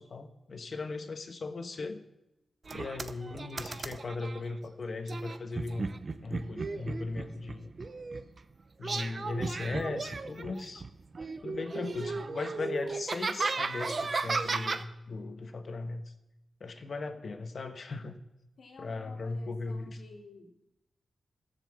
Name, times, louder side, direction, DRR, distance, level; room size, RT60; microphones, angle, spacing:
voice 1, 0.0-2.0 2.7-5.9 6.2-7.7 8.8-10.8 11.4-16.0 16.6-18.2 18.8-20.0, left 3 dB, 50° left, 7 dB, 1.2 m, -38 dB
sound 1, 2.7-4.4 5.1-8.4 8.8-10.9 11.1-14.8, right 3 dB, 40° right, 0.7 m, -35 dB
voice 2, 18.6-20.5, left 3 dB, 75° left, 1 dB, 2.3 m, -53 dB
15.0 x 7.3 x 7.2 m, 0.91 s
wide cardioid pair, 115°, 0 cm